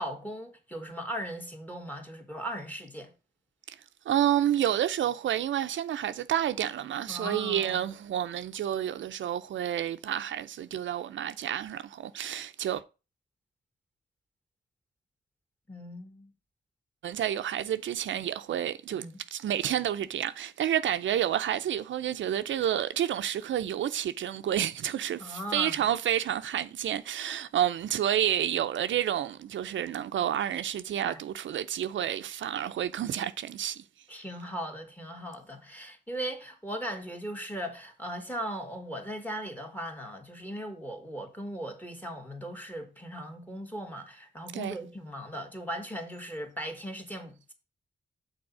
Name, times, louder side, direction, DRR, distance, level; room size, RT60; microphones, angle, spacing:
voice 1, 0.0-3.1 7.1-7.8 15.7-16.3 18.9-19.2 25.2-25.8 31.0-31.2 34.1-47.5, equal, 10° left, 1.8 m, -38 dB
voice 2, 4.1-12.8 17.0-19.0 19.3-33.8 44.5-44.8, right 10 dB, 85° right, 0.5 m, -29 dB
6.2 x 4.1 x 6.0 m
cardioid pair, 75°, 19 cm